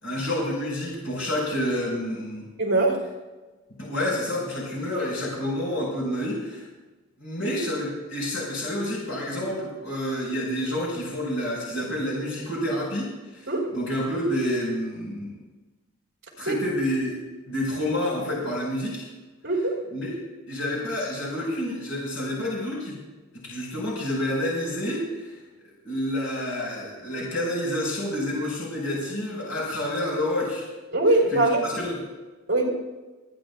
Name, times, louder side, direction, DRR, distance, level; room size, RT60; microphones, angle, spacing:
voice 1, 0.0-2.5 3.8-6.6 7.2-13.1 13.3-15.4 16.4-17.2 17.5-19.1 19.9-20.1 20.5-23.0 23.4-25.4 25.8-30.7 31.6-32.0, left 1 dB, 70° left, -5 dB, 5.1 m, -28 dB
voice 2, 2.6-3.0 13.5-13.7 16.4-16.6 19.4-19.8 30.9-31.6 32.5-32.7, right 2 dB, 50° right, -2 dB, 3.9 m, -22 dB
29.5 x 10.5 x 2.4 m, 1.2 s
head